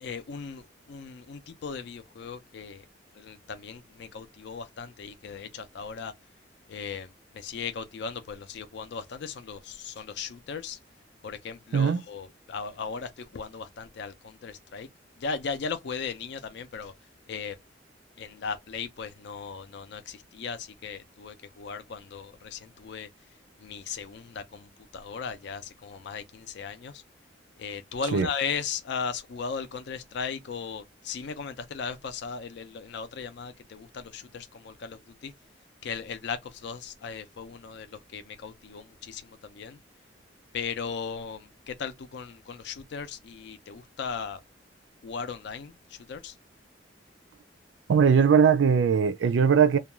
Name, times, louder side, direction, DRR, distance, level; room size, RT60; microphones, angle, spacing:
voice 1, 0.0-2.8 3.1-6.1 6.7-10.8 11.2-14.9 15.2-16.9 17.3-17.6 18.2-23.1 23.6-27.0 27.6-35.3 35.8-39.8 40.5-44.4 45.0-46.3, left 5 dB, 65° left, 0.4 m, -37 dB
voice 2, 47.9-49.8, right 6 dB, 75° right, 0.4 m, -20 dB
2.3 x 2.2 x 2.9 m
head